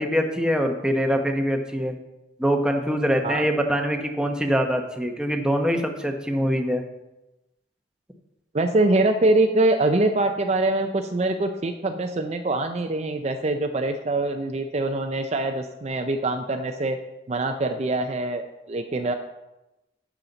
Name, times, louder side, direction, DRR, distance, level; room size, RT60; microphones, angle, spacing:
voice 1, 0.0-1.9 2.4-6.8, equal, 5° right, 4 dB, 0.9 m, -24 dB
voice 2, 8.5-17.0 17.3-19.1, right 2 dB, 35° right, 6 dB, 0.5 m, -24 dB
10.5 x 7.3 x 4.0 m, 0.97 s
head